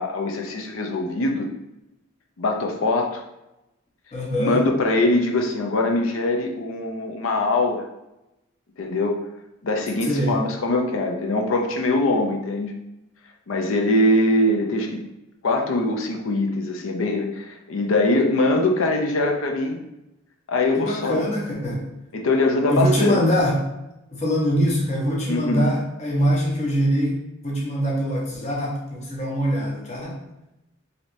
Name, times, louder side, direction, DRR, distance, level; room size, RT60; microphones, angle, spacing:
voice 1, 0.0-1.5 2.4-3.2 4.4-7.8 8.8-9.2 9.6-12.7 13.5-15.0 15.4-19.8 20.5-21.2 22.1-23.2 25.3-25.6, left 2 dB, 85° left, 2 dB, 0.5 m, -22 dB
voice 2, 4.1-4.6 10.0-10.4 20.7-21.9 22.7-23.7 24.1-30.2, equal, 35° left, -3 dB, 0.8 m, -23 dB
3.2 x 2.8 x 2.6 m, 0.93 s
head